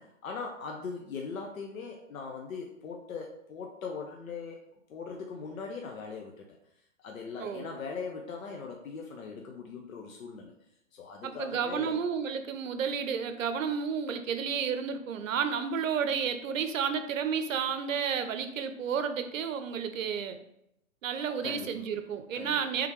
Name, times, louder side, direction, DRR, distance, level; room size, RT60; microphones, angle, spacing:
voice 1, 0.0-4.6 4.9-6.6 7.0-10.5 10.9-12.0 21.4-22.0 22.3-22.6, left 5 dB, 80° left, 2 dB, 0.7 m, -40 dB
voice 2, 11.2-20.4 21.0-22.9, right 7 dB, 70° right, 8 dB, 0.6 m, -31 dB
3.5 x 3.4 x 3.0 m, 0.80 s
hypercardioid pair, 150°, 40 cm